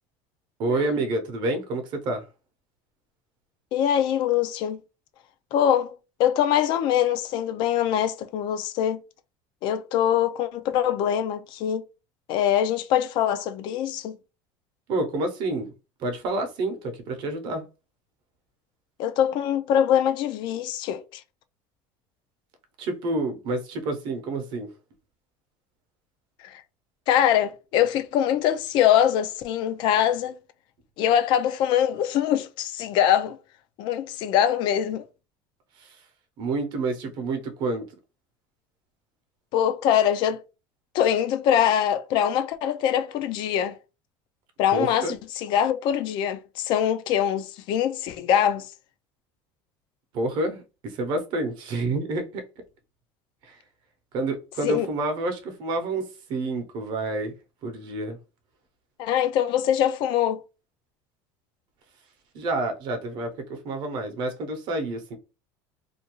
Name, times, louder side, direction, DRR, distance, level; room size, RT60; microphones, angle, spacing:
voice 1, 0.6-2.3 14.9-15.7 16.0-17.6 22.8-24.7 35.8-36.0 36.4-37.9 44.7-45.1 50.1-52.4 53.4-53.6 54.1-57.3 57.6-58.2 62.3-65.2, right 2 dB, 50° right, 0.7 m, -28 dB
voice 2, 3.7-4.8 5.5-5.9 6.2-9.0 9.6-11.8 12.3-14.2 19.0-21.2 26.4-26.6 27.1-30.4 31.0-33.4 33.8-35.0 39.5-40.4 40.9-43.8 44.6-48.7 54.6-54.9 59.0-60.4, left 10 dB, 55° left, 0.3 m, -23 dB
2.5 x 2.3 x 2.9 m
cardioid pair, 150°, 10 cm